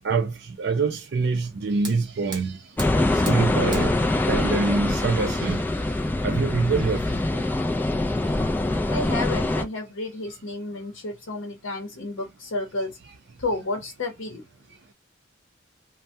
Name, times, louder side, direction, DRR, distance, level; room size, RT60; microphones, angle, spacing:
voice 1, 0.0-2.6 3.1-3.9 4.3-5.6 6.2-7.4, right 4 dB, 55° right, 0.4 m, -25 dB
Fire, 1.2-7.2, right 3 dB, 25° right, 0.9 m, -42 dB
sound 1, 2.8-9.6, left 2 dB, 10° left, 0.3 m, -24 dB
voice 2, 8.9-12.9 13.4-14.4, left 2 dB, 85° left, 0.7 m, -31 dB
2.6 x 2.1 x 3.3 m
head